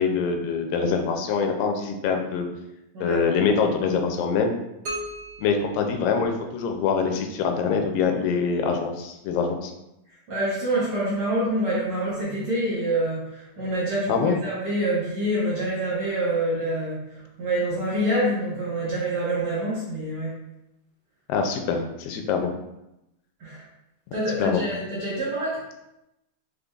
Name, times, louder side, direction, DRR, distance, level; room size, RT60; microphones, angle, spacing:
voice 1, 0.0-2.5 3.0-4.5 5.4-9.7 14.1-14.4 21.3-22.5 24.4-24.6, left 5 dB, 85° left, 4 dB, 2.3 m, -24 dB
sound 1, 4.8-6.8, right 1 dB, 85° right, 1.0 m, -37 dB
voice 2, 10.3-20.4 23.4-23.6 24.1-25.7, right 1 dB, 55° right, -8 dB, 1.6 m, -26 dB
5.2 x 3.9 x 2.4 m, 0.89 s
omnidirectional pair, 3.8 m